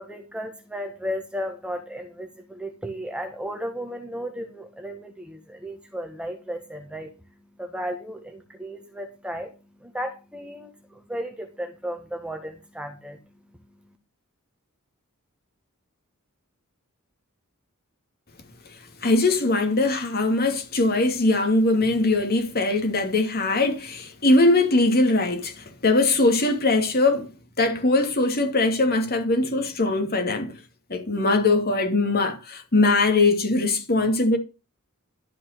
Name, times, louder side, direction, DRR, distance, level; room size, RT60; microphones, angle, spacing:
voice 1, 0.0-14.0, equal, 5° right, 1.6 m, -35 dB
voice 2, 19.0-27.3 27.6-30.5 30.9-34.4, left 2 dB, 45° left, 2.8 m, -21 dB
12.5 x 5.7 x 6.8 m
head